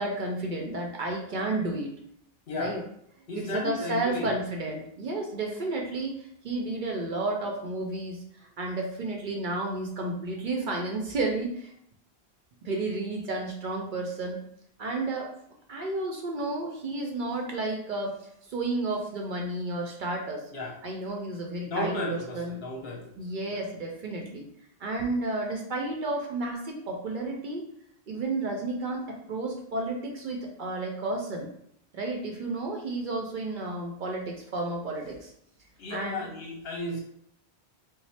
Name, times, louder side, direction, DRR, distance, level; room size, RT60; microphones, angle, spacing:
voice 1, 0.0-2.0 2.6-2.8 3.4-11.7 12.6-14.4 14.8-15.3 15.7-18.1 18.5-20.4 20.8-22.6 23.2-24.5 24.8-27.6 28.1-31.5 31.9-35.3 35.9-36.2, right 2 dB, 60° right, 0 dB, 0.6 m, -32 dB
voice 2, 2.5-2.8 3.3-4.3 20.5-20.8 21.7-23.1 23.5-23.6 35.8-37.0, left 1 dB, 70° left, -1 dB, 1.0 m, -33 dB
3.0 x 2.0 x 4.1 m, 0.71 s
omnidirectional pair, 1.1 m